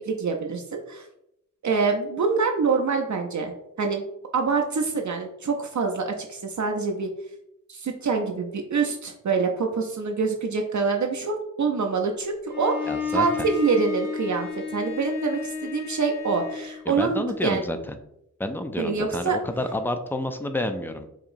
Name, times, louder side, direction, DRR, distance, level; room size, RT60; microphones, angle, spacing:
voice 1, 0.1-1.1 1.6-4.0 4.3-7.1 7.7-17.6 18.8-19.4, right 4 dB, 65° right, 2 dB, 0.5 m, -26 dB
Bowed string instrument, 12.5-16.9, left 5 dB, 60° left, 1.1 m, -32 dB
voice 2, 12.9-13.5 16.9-18.0 18.4-21.1, left 1 dB, 5° left, 7 dB, 0.4 m, -29 dB
4.8 x 2.9 x 2.6 m, 0.80 s
wide cardioid pair, 75°, 32 cm